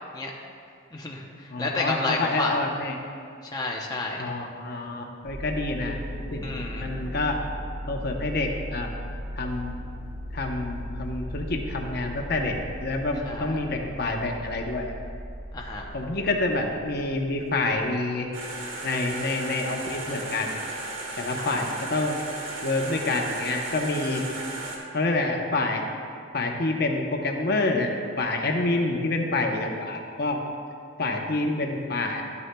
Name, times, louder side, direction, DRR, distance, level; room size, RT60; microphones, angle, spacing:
voice 1, 0.9-2.6 3.4-4.3 6.4-6.8 13.2-13.6 15.5-15.9 21.4-21.6, left 2 dB, 20° left, -1 dB, 0.7 m, -31 dB
voice 2, 1.5-2.9 4.2-6.0 6.3-7.4 7.9-8.9 9.4-9.8 10.3-14.9 15.9-18.3 18.8-20.6 21.2-22.2 22.6-24.2 24.9-25.8 26.3-27.9 28.2-30.4 31.0-32.2, left 2 dB, 50° left, 2 dB, 0.8 m, -27 dB
sound 1, 5.2-17.9, equal, 65° right, 1.3 m, -37 dB
sound 2, 18.3-24.8, right 2 dB, 80° right, 1.5 m, -35 dB
12.5 x 9.5 x 2.2 m, 2.4 s
head